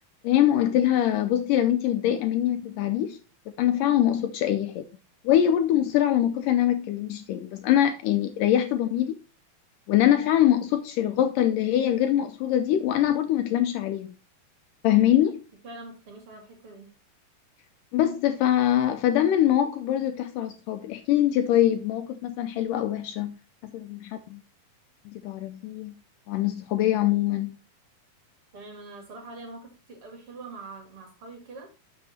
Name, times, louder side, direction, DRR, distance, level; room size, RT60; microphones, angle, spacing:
voice 1, 0.2-3.2 3.6-4.8 5.2-9.1 9.9-14.1 14.8-15.4 17.9-23.4 23.6-24.4 25.1-25.9 26.3-27.6, left 11 dB, 80° left, 2.0 m, -23 dB
voice 2, 15.6-16.9 28.5-31.7, right 3 dB, 40° right, 2.7 m, -44 dB
7.3 x 6.6 x 4.2 m
omnidirectional pair, 4.2 m